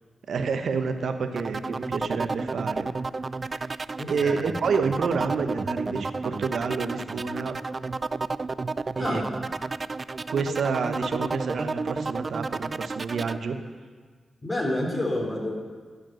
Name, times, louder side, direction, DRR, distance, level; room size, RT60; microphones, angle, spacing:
voice 1, 0.3-2.9 3.7-7.6 9.0-9.2 10.3-13.6, right 5 dB, 70° right, 8 dB, 0.8 m, -29 dB
sound 1, 1.4-13.4, right 3 dB, 45° right, 0.3 m, -31 dB
voice 2, 4.0-4.4 9.0-9.2 14.4-15.5, left 1 dB, 30° left, -1 dB, 3.5 m, -28 dB
13.0 x 5.0 x 7.5 m, 1.5 s
supercardioid pair, 45°, 0 cm